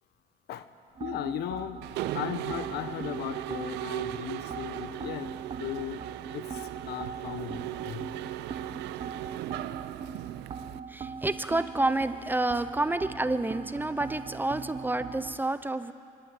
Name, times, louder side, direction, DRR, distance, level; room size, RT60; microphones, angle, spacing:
sound 1, 0.9-15.4, right 5 dB, 35° right, 1.0 m, -41 dB
voice 1, 1.0-1.9 2.1-6.1 6.3-8.1, left 11 dB, 75° left, 12 dB, 1.0 m, -37 dB
Mechanisms, 1.8-10.8, right 14 dB, 85° right, 0.6 m, -37 dB
voice 2, 10.9-15.9, right 2 dB, 10° right, 12 dB, 0.7 m, -29 dB
25.0 x 12.0 x 9.1 m, 2.5 s
cardioid pair, 110°, 17 cm